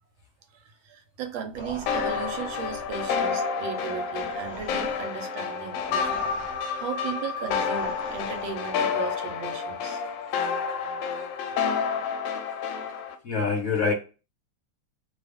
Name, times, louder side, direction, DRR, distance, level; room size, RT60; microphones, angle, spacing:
voice 1, 0.5-6.1 6.8-10.0, right 7 dB, 80° right, 1.5 m, -36 dB
sound 1, 1.5-8.9, right 1 dB, 10° left, 0.6 m, -44 dB
sound 2, 1.9-13.1, left 6 dB, 75° left, 1.3 m, -29 dB
voice 2, 13.2-13.9, left 5 dB, 55° left, 1.0 m, -25 dB
3.2 x 2.3 x 3.3 m
omnidirectional pair, 2.1 m